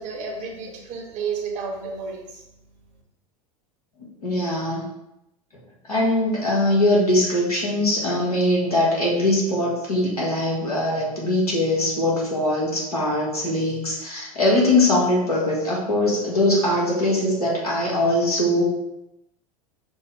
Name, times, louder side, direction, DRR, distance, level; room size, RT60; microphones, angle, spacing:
voice 1, 0.0-2.4, right 5 dB, 40° right, 1 dB, 0.9 m, -31 dB
voice 2, 4.2-4.8 5.9-18.7, left 1 dB, 80° left, -5 dB, 1.5 m, -21 dB
6.1 x 2.2 x 3.4 m, 0.87 s
figure-of-eight pair, 85°, 19 cm